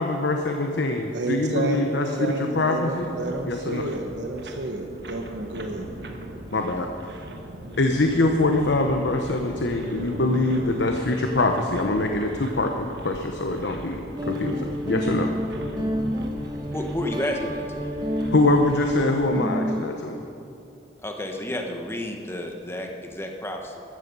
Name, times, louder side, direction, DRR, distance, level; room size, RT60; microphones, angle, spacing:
voice 1, 0.0-3.8 6.5-6.9 7.8-15.3 18.3-20.2, left 2 dB, 85° left, 4 dB, 0.9 m, -24 dB
voice 2, 1.1-1.8 2.2-5.9, right 2 dB, 85° right, 3 dB, 1.1 m, -30 dB
sound 1, 2.6-19.1, right 1 dB, 70° right, 1.5 m, -39 dB
Guitar, 14.2-19.8, equal, 25° right, 1.3 m, -29 dB
voice 3, 16.7-17.9 21.0-23.8, left 1 dB, 15° left, 2 dB, 1.2 m, -31 dB
15.0 x 13.0 x 5.4 m, 2.7 s
head